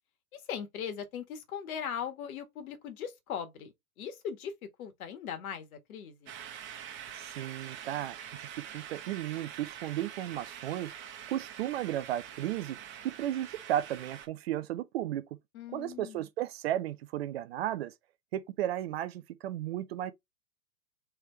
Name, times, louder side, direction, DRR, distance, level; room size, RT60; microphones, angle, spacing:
voice 1, 0.3-4.5 4.8-6.3 15.5-16.3, left 8 dB, 60° left, 1.5 m, -39 dB
sound 1, 6.3-14.3, right 9 dB, 25° right, 1.0 m, -45 dB
voice 2, 7.2-8.5 8.7-10.9 11.3-12.8 13.0-15.3 15.7-17.9 18.3-20.1, right 12 dB, 40° right, 0.5 m, -34 dB
3.5 x 3.3 x 4.4 m
hypercardioid pair, 125°, 48 cm